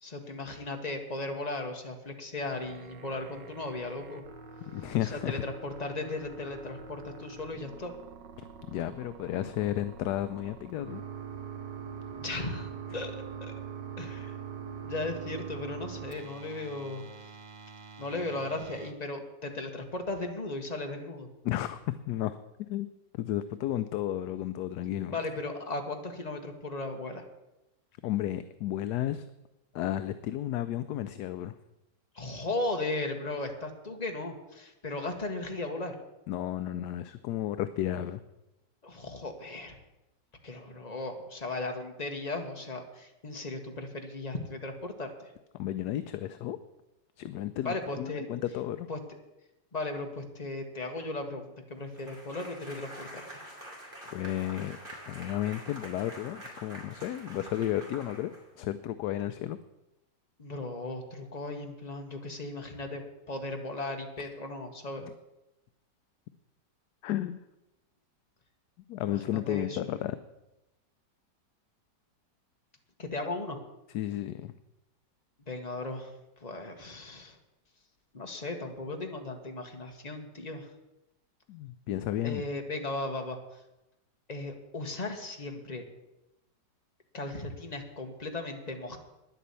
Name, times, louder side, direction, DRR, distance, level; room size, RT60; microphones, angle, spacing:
voice 1, 0.0-4.2 5.0-7.9 12.1-13.5 14.0-14.3 14.8-17.0 18.0-21.3 25.1-27.2 32.1-35.9 38.8-39.8 40.4-45.1 47.6-48.3 48.9-49.2 49.7-53.4 60.4-65.1 69.0-69.8 73.0-73.6 75.5-76.1 76.4-77.4 78.1-80.7 82.2-83.4 84.3-85.8 87.1-89.0, left 2 dB, 25° left, 4 dB, 1.3 m, -36 dB
sound 1, 2.4-18.9, right 6 dB, 70° right, 1.7 m, -44 dB
voice 2, 4.6-5.4 8.7-11.0 21.4-22.4 22.7-22.9 23.2-25.2 28.0-29.3 29.7-31.5 36.3-38.2 45.5-46.6 47.2-48.9 54.0-58.3 58.6-59.6 67.0-67.4 68.9-70.2 73.9-74.5 81.5-82.5, left 12 dB, 70° left, 11 dB, 1.0 m, -33 dB
sound 2, 51.9-58.7, right 1 dB, 30° right, 2.9 m, -46 dB
10.0 x 8.5 x 8.2 m, 0.95 s
omnidirectional pair, 2.0 m